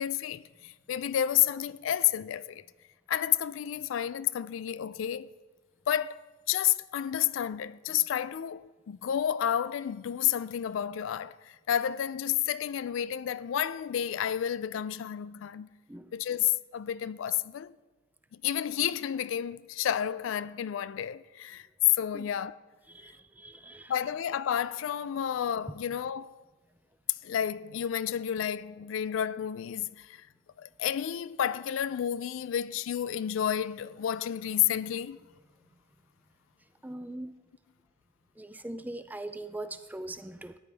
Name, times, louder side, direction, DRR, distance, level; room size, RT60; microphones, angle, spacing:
voice 1, 0.0-2.6 3.1-5.3 5.9-6.2 6.5-15.7 16.1-17.7 18.3-21.7 21.9-22.6 23.9-26.3 27.2-30.2 30.6-35.2, left 10 dB, 70° left, 0.3 m, -30 dB
voice 2, 22.9-23.9 36.8-37.3 38.4-40.6, right 1 dB, 10° right, 0.4 m, -41 dB
14.0 x 9.9 x 3.4 m
head